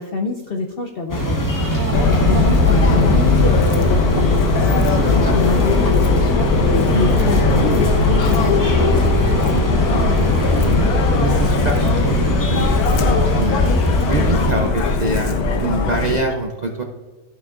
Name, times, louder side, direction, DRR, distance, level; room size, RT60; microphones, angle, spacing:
voice 1, 0.0-1.4 2.0-11.1, left 3 dB, 65° left, 4 dB, 0.5 m, -26 dB
sound 1, 1.1-14.5, equal, 20° left, 0.6 m, -21 dB
sound 2, 1.6-15.9, right 2 dB, 15° right, 1.1 m, -33 dB
Subway metro underground, 1.9-16.2, left 4 dB, 80° left, 1.3 m, -18 dB
voice 2, 11.2-12.2 12.5-12.6 12.9-16.8, right 2 dB, 55° right, 2 dB, 0.4 m, -24 dB
13.0 x 6.0 x 2.4 m, 1.4 s
omnidirectional pair, 1.6 m